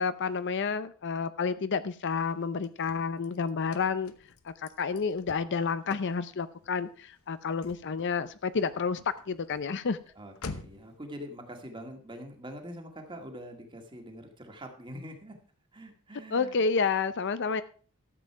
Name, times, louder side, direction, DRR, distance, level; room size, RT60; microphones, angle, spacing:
voice 1, 0.0-4.1 4.4-9.0 9.3-10.0 16.3-17.6, left 5 dB, 55° left, 13 dB, 0.6 m, -30 dB
Car / Slam, 2.3-11.0, left 3 dB, 70° left, 1.0 m, -49 dB
voice 2, 10.2-15.4 15.7-16.6, equal, 20° right, 4 dB, 1.9 m, -44 dB
13.0 x 7.7 x 4.6 m, 0.41 s
head